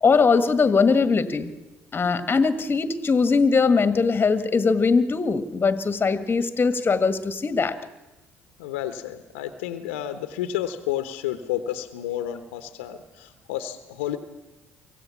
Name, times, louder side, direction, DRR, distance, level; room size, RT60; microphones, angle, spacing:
voice 1, 0.0-1.5 1.9-7.8, left 4 dB, 30° left, 11 dB, 1.8 m, -21 dB
voice 2, 8.6-14.2, left 12 dB, 80° left, 10 dB, 1.1 m, -31 dB
24.5 x 16.0 x 7.3 m, 1.0 s
hypercardioid pair, 55°, 6 cm